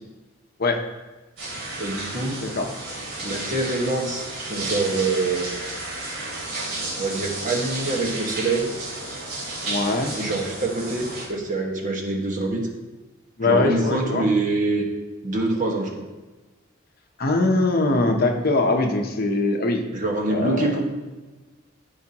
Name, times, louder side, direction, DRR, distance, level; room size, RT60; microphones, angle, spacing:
sound 1, 1.4-11.3, right 2 dB, 85° right, 2.8 m, -32 dB
voice 1, 1.8-2.5 3.2-5.5 6.9-8.7 10.2-12.6 13.4-14.8 15.2-15.9 19.9-20.8, right 2 dB, 40° right, 0 dB, 1.4 m, -25 dB
voice 2, 9.7-10.1 13.4-14.3 17.2-19.8 20.3-20.8, left 2 dB, 50° left, 4 dB, 0.8 m, -22 dB
14.0 x 5.0 x 2.9 m, 1.2 s
head